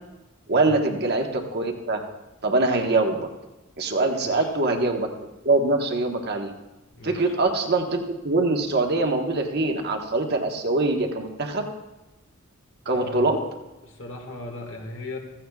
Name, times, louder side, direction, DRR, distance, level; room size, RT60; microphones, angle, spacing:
voice 1, 0.5-2.0 2.4-3.2 3.8-5.1 5.4-6.5 7.0-8.0 8.2-11.7 12.8-13.4, right 2 dB, 50° right, 3 dB, 1.3 m, -23 dB
voice 2, 4.1-4.5 6.9-7.3 12.9-13.4 13.8-15.2, left 2 dB, 65° left, 1 dB, 1.9 m, -38 dB
15.5 x 14.5 x 2.4 m, 1.1 s
head